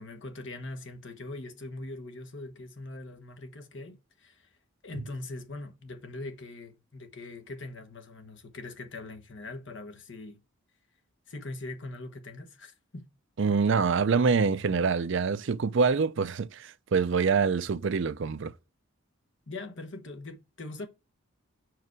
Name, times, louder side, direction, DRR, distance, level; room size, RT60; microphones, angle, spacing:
voice 1, 0.0-4.5 4.8-10.4 11.3-13.0 19.5-20.9, left 2 dB, 55° left, 1.1 m, -41 dB
voice 2, 13.4-18.5, right 5 dB, 55° right, 0.4 m, -25 dB
5.9 x 4.8 x 4.7 m
head